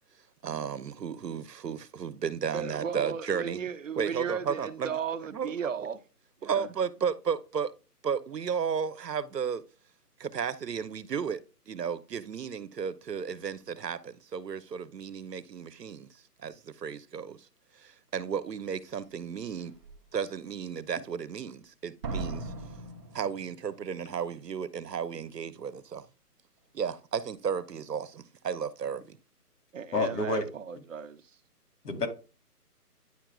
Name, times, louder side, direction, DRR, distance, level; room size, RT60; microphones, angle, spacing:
voice 1, 0.4-3.6 4.0-4.9 5.3-5.5 6.4-7.7 8.0-9.6 10.2-16.1 16.4-17.4 18.1-19.7 20.1-22.5 23.1-26.0 26.7-29.2, right 7 dB, 85° right, 1.0 m, -33 dB
voice 2, 2.5-6.0 6.4-6.7 29.7-31.2, right 7 dB, 55° right, 0.8 m, -35 dB
Slam, 18.9-19.0 19.6-20.0 22.0-23.9 24.2-24.3, right 2 dB, 20° right, 0.8 m, -39 dB
voice 3, 29.9-30.5 31.8-32.1, left 3 dB, 80° left, 2.4 m, -28 dB
10.0 x 4.8 x 2.3 m
hypercardioid pair, 160°, 47 cm